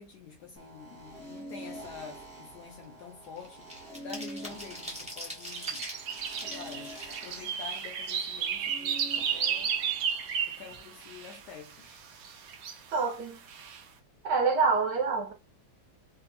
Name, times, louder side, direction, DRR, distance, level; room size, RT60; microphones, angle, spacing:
voice 1, 0.0-3.7 4.0-5.9 6.4-9.7 10.5-12.0, left 6 dB, 70° left, 1.0 m, -47 dB
sound 1, 0.6-10.4, right 1 dB, 40° right, 0.9 m, -47 dB
sound 2, 1.6-1.9 2.2-8.6 9.0-9.1 9.4-10.4 10.7-10.9 11.2-11.5, equal, 10° right, 0.5 m, -44 dB
sound 3, 5.5-11.4 12.2-13.0 13.5-13.8, right 8 dB, 85° right, 0.7 m, -33 dB
voice 2, 12.9-13.4 14.2-15.3, right 4 dB, 70° right, 1.2 m, -26 dB
3.3 x 2.0 x 3.1 m
omnidirectional pair, 2.2 m